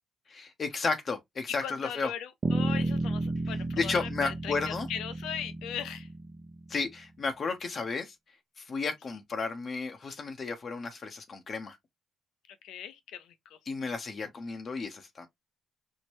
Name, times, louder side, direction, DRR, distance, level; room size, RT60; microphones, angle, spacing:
voice 1, 0.3-2.1 3.8-4.9 6.7-8.1 8.6-11.8 13.7-15.3, left 4 dB, 45° left, 0.7 m, -33 dB
voice 2, 1.5-6.1 12.6-13.3, left 9 dB, 85° left, 0.6 m, -39 dB
Bass guitar, 2.4-6.9, right 2 dB, 40° right, 0.6 m, -32 dB
4.5 x 2.1 x 3.0 m
cardioid pair, 90°, 0 cm